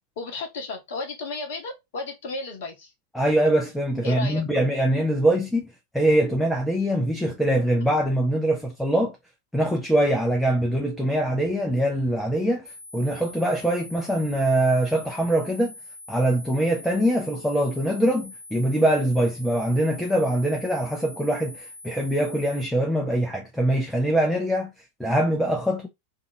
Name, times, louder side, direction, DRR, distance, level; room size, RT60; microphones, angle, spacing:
voice 1, 0.2-2.9 4.0-4.4, left 3 dB, 55° left, 0.7 m, -33 dB
voice 2, 3.1-9.2 9.5-15.7 16.1-24.7 25.0-25.9, right 1 dB, ahead, 0.5 m, -23 dB
sound 1, 12.6-22.6, left 2 dB, 80° right, 0.8 m, -44 dB
2.7 x 2.5 x 2.7 m
figure-of-eight pair, 90°, 0 cm